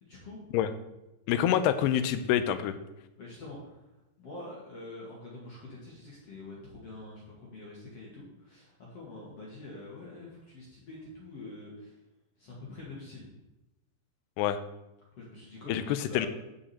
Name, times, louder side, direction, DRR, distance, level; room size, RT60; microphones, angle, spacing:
voice 1, 0.0-0.4 1.3-1.6 3.2-3.9 4.2-12.0 12.4-13.3 15.1-16.3, left 2 dB, 45° left, -4 dB, 2.2 m, -45 dB
voice 2, 1.3-2.8 14.4-14.6 15.7-16.3, left 10 dB, 80° left, 11 dB, 2.5 m, -26 dB
14.5 x 5.1 x 4.3 m, 0.95 s
omnidirectional pair, 5.0 m